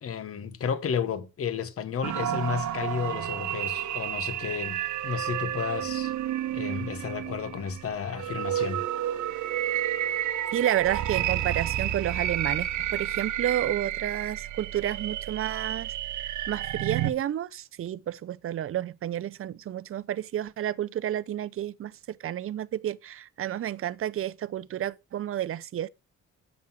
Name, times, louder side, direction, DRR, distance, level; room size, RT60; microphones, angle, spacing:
voice 1, 0.0-6.1 6.5-8.8, left 7 dB, 50° left, 1.1 m, -32 dB
sound 1, 2.0-17.1, right 12 dB, 70° right, 0.9 m, -31 dB
voice 2, 10.5-25.9, right 11 dB, 45° right, 0.6 m, -31 dB
7.4 x 6.1 x 5.7 m
cardioid pair, 90°, 30 cm